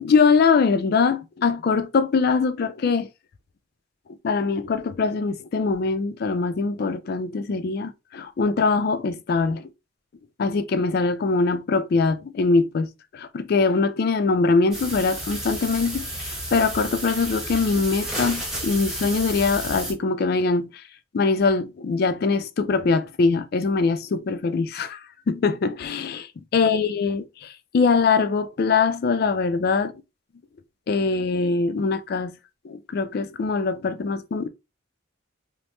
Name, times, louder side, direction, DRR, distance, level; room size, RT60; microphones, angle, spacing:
voice 1, 0.0-3.1 4.2-9.7 10.4-20.8 21.1-29.9 30.9-32.3 32.6-34.5, left 4 dB, 50° left, 0.3 m, -22 dB
sound 1, 14.7-19.9, right 1 dB, ahead, 0.8 m, -32 dB
3.0 x 2.0 x 3.0 m
head